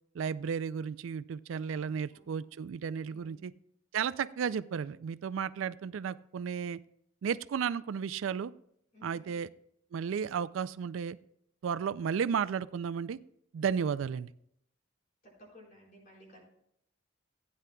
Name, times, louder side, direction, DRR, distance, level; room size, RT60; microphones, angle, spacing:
voice 1, 0.1-3.5 3.9-6.8 7.2-8.5 9.0-9.5 9.9-11.2 11.6-13.2 13.5-14.3, right 7 dB, 80° right, 16 dB, 0.3 m, -33 dB
voice 2, 1.7-2.4 3.1-3.5 8.9-9.3 15.4-16.4, equal, 45° left, -3 dB, 4.4 m, -57 dB
15.5 x 9.7 x 2.3 m, 0.73 s
head